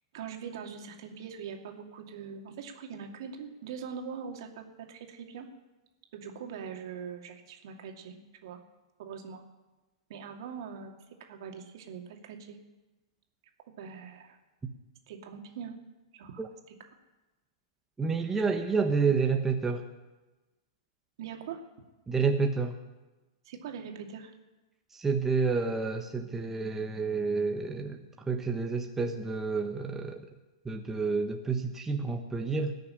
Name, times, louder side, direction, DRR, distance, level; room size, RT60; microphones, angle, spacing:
voice 1, 0.1-5.5 6.1-8.2 8.4-8.6 9.0-9.4 10.1-10.9 11.2-12.6 13.8-14.4 15.1-15.8 16.1-16.5 21.2-21.6 23.4-24.3, right 6 dB, 60° right, 3 dB, 2.6 m, -42 dB
voice 2, 18.0-19.8 22.1-22.7 24.9-28.0 28.3-30.2 30.6-32.7, right 4 dB, 10° right, 4 dB, 1.2 m, -29 dB
18.5 x 6.7 x 10.0 m, 1.1 s
hypercardioid pair, 115°, 3 cm